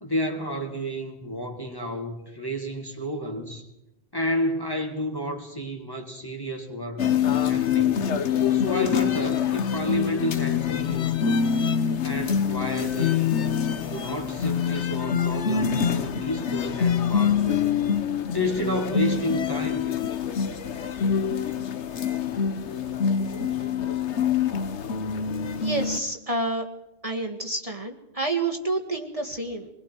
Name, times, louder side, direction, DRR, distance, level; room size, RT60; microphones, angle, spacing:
voice 1, 0.0-3.7 4.1-7.1 7.4-8.1 8.5-11.5 12.0-13.4 13.9-17.7 18.3-19.9, left 1 dB, 20° left, 2 dB, 2.0 m, -31 dB
sound 1, 7.0-26.0, left 7 dB, 75° left, 1.3 m, -25 dB
voice 2, 25.6-26.7 27.0-29.7, right 2 dB, 30° right, 2 dB, 1.9 m, -29 dB
26.0 x 21.5 x 4.6 m, 0.87 s
omnidirectional pair, 1.2 m